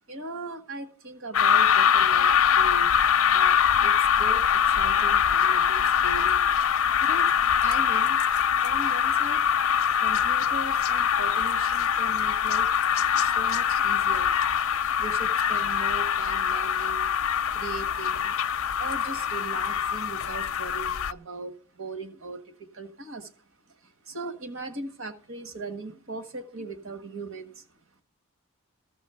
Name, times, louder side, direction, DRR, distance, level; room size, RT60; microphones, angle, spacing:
voice 1, 0.1-2.9 3.3-7.3 7.6-8.2 8.6-9.4 10.0-12.7 13.2-14.3 15.0-17.1 17.5-18.4 18.8-27.7, right 3 dB, 60° right, 8 dB, 1.4 m, -39 dB
sound 1, 1.3-21.1, left 8 dB, 65° left, 0.5 m, -23 dB
14.5 x 6.3 x 6.8 m, 0.39 s
head